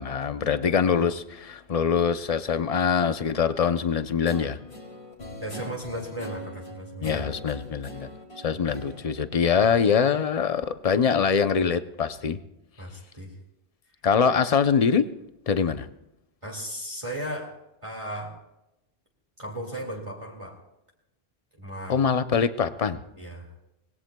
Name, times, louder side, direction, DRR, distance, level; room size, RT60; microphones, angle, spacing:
voice 1, 0.0-4.6 7.0-8.1 8.4-12.4 14.0-15.1 15.5-15.9 21.9-23.0, left 6 dB, 40° left, 11 dB, 0.6 m, -23 dB
Guitar, 4.2-10.1, equal, 75° left, 2.6 m, -41 dB
voice 2, 5.4-7.2 8.5-8.6 12.8-13.4 16.4-18.4 19.4-20.6 21.6-22.0 23.2-23.5, equal, 30° right, -4 dB, 2.2 m, -36 dB
24.5 x 19.5 x 2.3 m, 0.90 s
omnidirectional pair, 1.1 m